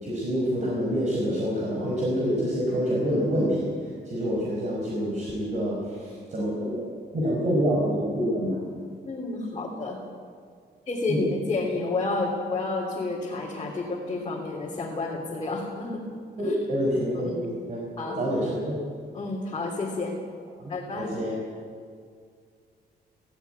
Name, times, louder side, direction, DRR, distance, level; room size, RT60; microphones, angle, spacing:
voice 1, 0.0-6.8 7.1-8.6 11.1-11.2 16.4-18.7 20.6-21.3, equal, 40° right, -4 dB, 5.0 m, -27 dB
voice 2, 9.0-10.0 10.9-16.1 16.4-16.6 17.1-17.4 18.0-18.2 19.1-20.2 20.7-21.1, left 3 dB, 30° left, -3 dB, 3.1 m, -30 dB
17.5 x 16.5 x 9.3 m, 2.1 s
cardioid pair, 170°, 18 cm